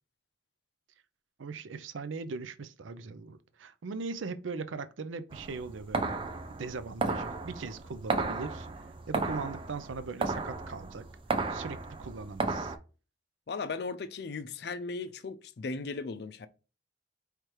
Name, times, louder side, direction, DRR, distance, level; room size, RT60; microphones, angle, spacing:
voice 1, 1.4-6.2 6.6-11.0 11.5-12.7, right 4 dB, 85° right, 0.5 m, -39 dB
sound 1, 5.3-12.8, right 3 dB, 25° right, 0.4 m, -34 dB
voice 2, 13.5-16.5, left 4 dB, 55° left, 0.4 m, -37 dB
4.8 x 3.2 x 3.0 m
head